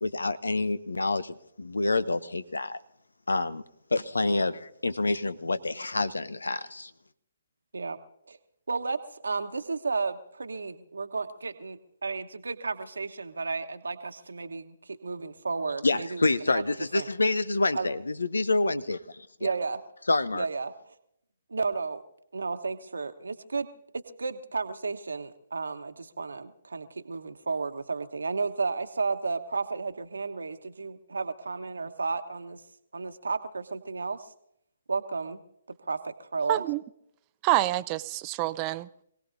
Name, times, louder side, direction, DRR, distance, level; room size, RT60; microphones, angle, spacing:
voice 1, 0.0-2.8 3.3-3.6 3.9-6.9 15.8-19.5 20.1-20.4, left 2 dB, 80° left, 15 dB, 0.8 m, -27 dB
voice 2, 8.7-16.6 16.9-17.1 17.7-17.9 19.4-19.8 20.3-20.9 21.5-22.0 22.3-23.7 24.2-32.6 32.9-34.3 34.9-35.4 35.8-36.6, right 4 dB, 75° right, 9 dB, 1.2 m, -33 dB
voice 3, 36.5-36.8 37.4-39.0, right 17 dB, 30° right, 16 dB, 0.5 m, -27 dB
26.5 x 17.5 x 2.7 m, 0.75 s
figure-of-eight pair, 135°, 0 cm